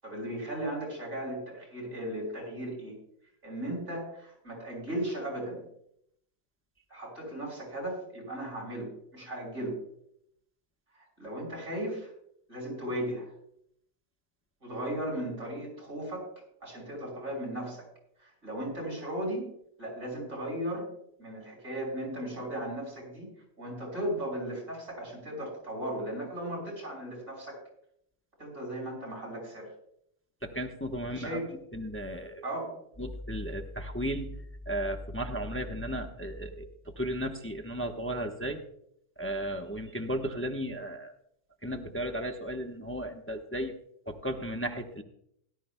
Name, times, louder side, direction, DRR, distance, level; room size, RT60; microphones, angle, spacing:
voice 1, 0.0-2.9 3.4-5.6 6.9-9.8 10.9-12.1 12.5-13.3 14.6-16.3 16.6-17.9 18.2-19.5 19.8-20.9 21.2-23.3 23.6-27.6 28.4-29.7 31.1-31.5 32.4-32.7, right 1 dB, 85° right, -1 dB, 5.8 m, -36 dB
voice 2, 30.4-31.4 31.7-32.4 33.0-34.4 34.7-36.7 37.0-38.6 39.2-41.1 41.6-43.7 44.1-45.0, equal, 10° left, 3 dB, 0.8 m, -34 dB
18.0 x 12.0 x 2.2 m, 0.72 s
omnidirectional pair, 1.3 m